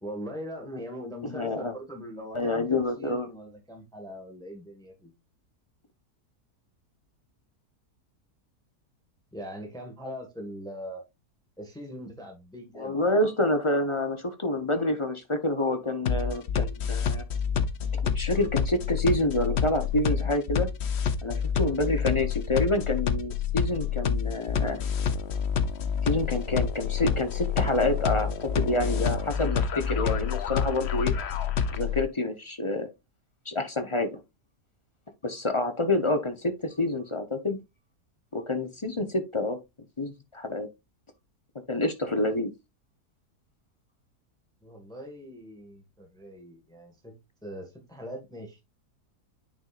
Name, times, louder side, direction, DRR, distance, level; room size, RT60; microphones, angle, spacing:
voice 1, 0.0-5.1 9.3-11.0 11.6-13.2 44.6-47.2 47.4-48.6, equal, ahead, 1.7 m, -41 dB
voice 2, 1.3-1.7 2.3-3.3 12.7-17.2 18.0-20.7 21.2-24.8 26.0-31.1 31.7-32.9 33.5-34.2 35.2-37.6 38.3-39.6 40.0-40.7 41.7-42.5, left 2 dB, 25° left, 0.7 m, -28 dB
sound 1, 16.1-32.0, left 7 dB, 50° left, 0.9 m, -28 dB
9.4 x 5.3 x 2.5 m
omnidirectional pair, 1.7 m